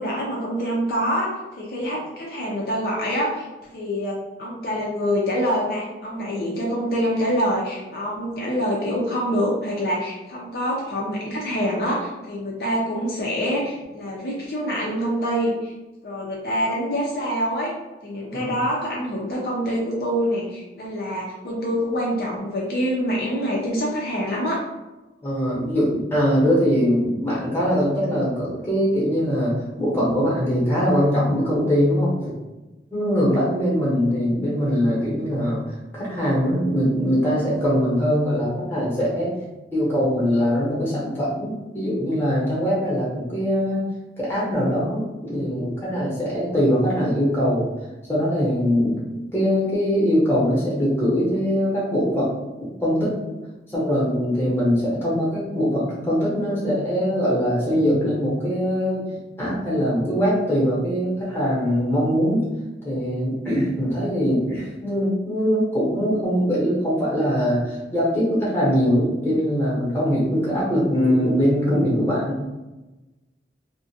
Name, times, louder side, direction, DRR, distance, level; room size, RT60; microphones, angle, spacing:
voice 1, 0.0-3.5 3.7-15.7 16.0-17.7 18.0-24.6, equal, 55° left, -4 dB, 0.5 m, -25 dB
voice 2, 25.2-32.3 32.9-35.6 35.9-39.3 39.7-43.8 44.2-47.7 48.1-52.3 52.8-53.2 53.7-59.1 59.4-62.4 62.8-72.4, equal, 10° left, -7 dB, 0.9 m, -22 dB
2.4 x 2.1 x 2.7 m, 1.1 s
head